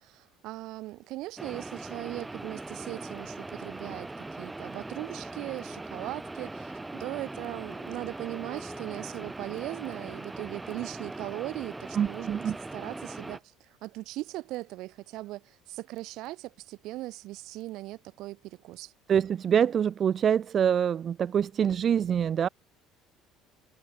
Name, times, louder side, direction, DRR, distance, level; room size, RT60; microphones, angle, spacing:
voice 1, 0.0-12.4 12.7-18.9, right 18 dB, 65° right, 7.6 m, -39 dB
sound 1, 1.4-13.4, right 2 dB, 15° right, 4.9 m, -40 dB
Wind instrument woodwind instrument, 5.5-12.2, left 1 dB, 5° left, 5.6 m, -53 dB
voice 2, 12.0-12.6 19.1-22.5, right 8 dB, 45° right, 1.8 m, -25 dB
hypercardioid pair, 70°, 0 cm